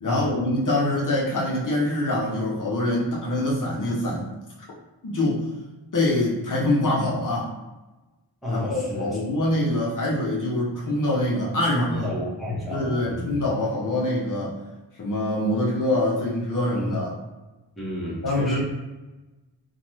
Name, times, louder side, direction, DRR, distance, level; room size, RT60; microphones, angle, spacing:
voice 1, 0.0-4.3 5.0-5.5 5.9-7.5 8.5-12.1 12.7-14.6 15.0-17.1 18.2-18.6, left 1 dB, 45° left, -4 dB, 0.6 m, -24 dB
voice 2, 8.4-9.2 11.9-13.4 16.7-17.0 17.8-18.6, left 1 dB, ahead, -6 dB, 0.7 m, -31 dB
2.9 x 2.2 x 3.0 m, 1.1 s
wide cardioid pair, 165°, 44 cm